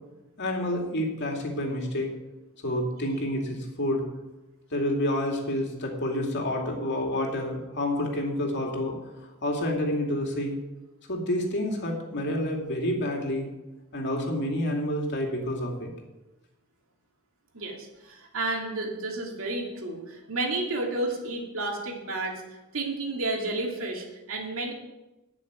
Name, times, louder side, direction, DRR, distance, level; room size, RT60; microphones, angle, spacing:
voice 1, 0.4-2.1 2.6-4.0 4.7-10.5 11.1-13.5 13.9-15.9, left 1 dB, 55° left, 1 dB, 2.7 m, -29 dB
voice 2, 17.5-22.4 22.7-24.7, right 2 dB, 65° right, 0 dB, 2.8 m, -31 dB
12.0 x 6.4 x 9.3 m, 1.0 s
head